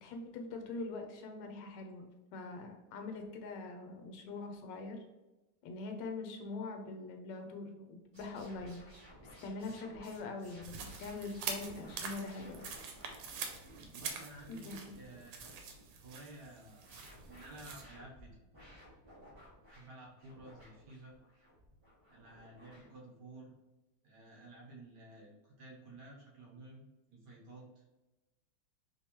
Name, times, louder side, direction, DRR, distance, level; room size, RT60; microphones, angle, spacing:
voice 1, 0.0-2.1 2.3-5.0 5.6-8.8 9.2-12.7 14.5-15.0, left 3 dB, 70° left, 4 dB, 1.1 m, -43 dB
sound 1, 8.1-22.9, equal, 20° right, 0.8 m, -57 dB
Footsteps on a muddy path, 10.6-17.8, right 5 dB, 90° right, 1.5 m, -45 dB
voice 2, 13.9-15.5 15.9-17.0 17.3-18.4 19.7-21.1 22.1-23.5 24.0-26.8 27.1-27.8, right 2 dB, 60° right, -3 dB, 1.4 m, -53 dB
3.4 x 3.0 x 2.9 m, 1.1 s
omnidirectional pair, 2.3 m